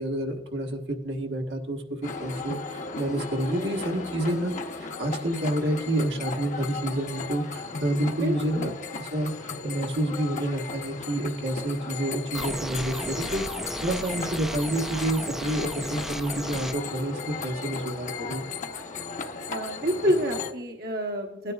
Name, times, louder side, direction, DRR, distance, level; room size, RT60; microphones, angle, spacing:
voice 1, 0.0-4.5 5.0-8.7 9.0-9.3 9.6-18.4, right 1 dB, 80° right, 2 dB, 1.4 m, -29 dB
sound 1, 2.0-20.5, left 4 dB, 45° left, 0.8 m, -36 dB
voice 2, 8.2-8.7 19.5-21.5, equal, 60° right, 2 dB, 1.0 m, -28 dB
sound 2, 12.3-16.7, right 1 dB, ahead, 0.4 m, -34 dB
16.5 x 9.6 x 2.3 m, 0.97 s
head